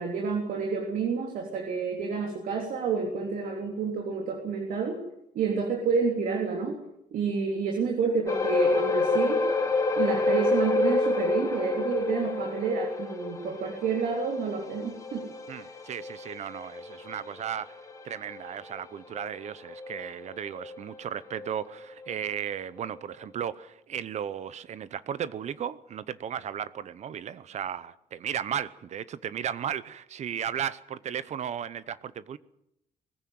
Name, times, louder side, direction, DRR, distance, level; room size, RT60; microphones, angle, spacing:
voice 1, 0.0-5.0 5.3-6.8 7.1-9.4 9.9-15.3 15.5-15.7, right 5 dB, 75° right, 3.4 m, -29 dB
sound 1, 8.3-21.0 21.3-21.5 22.0-22.1, left 3 dB, 20° left, 2.6 m, -29 dB
voice 2, 15.5-32.4, right 9 dB, 55° right, 0.8 m, -35 dB
20.5 x 15.5 x 9.4 m
cardioid pair, 130°, 14 cm